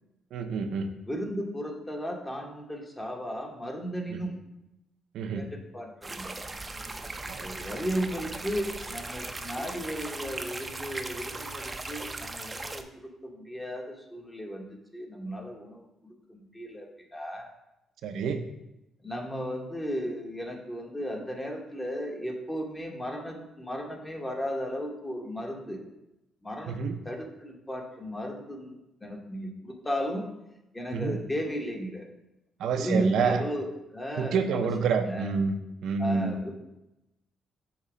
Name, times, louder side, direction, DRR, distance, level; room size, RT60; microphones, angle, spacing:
voice 1, 0.3-0.9 5.1-5.5 7.3-7.5 18.0-18.5 26.7-26.9 30.9-31.2 32.6-33.4 34.2-35.6 35.8-36.3, right 5 dB, 80° right, 6 dB, 0.5 m, -28 dB
voice 2, 1.1-4.3 5.3-6.3 7.4-14.7 14.9-17.5 19.0-25.9 26.4-26.8 27.0-30.3 30.7-32.1 32.6-35.3 36.0-36.5, equal, 15° left, 1 dB, 1.1 m, -35 dB
sound 1, 6.0-12.8, right 2 dB, 20° right, 0.5 m, -38 dB
6.5 x 3.0 x 4.9 m, 0.91 s
cardioid pair, 90°, 0 cm